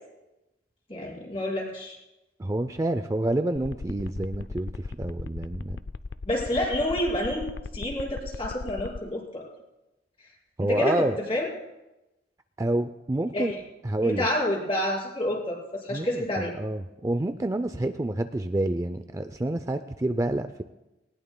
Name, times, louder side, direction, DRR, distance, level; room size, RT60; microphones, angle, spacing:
voice 1, 0.9-2.0 6.2-7.4 7.7-9.4 10.6-11.5 13.3-13.6 14.0-16.5, left 1 dB, 35° left, -4 dB, 5.1 m, -28 dB
voice 2, 2.4-5.8 10.6-11.2 12.6-13.5 13.8-14.3 15.9-20.6, right 1 dB, 20° right, 9 dB, 0.4 m, -28 dB
sound 1, 3.6-9.0, left 3 dB, 70° left, 0.4 m, -37 dB
20.0 x 19.0 x 2.2 m, 0.98 s
head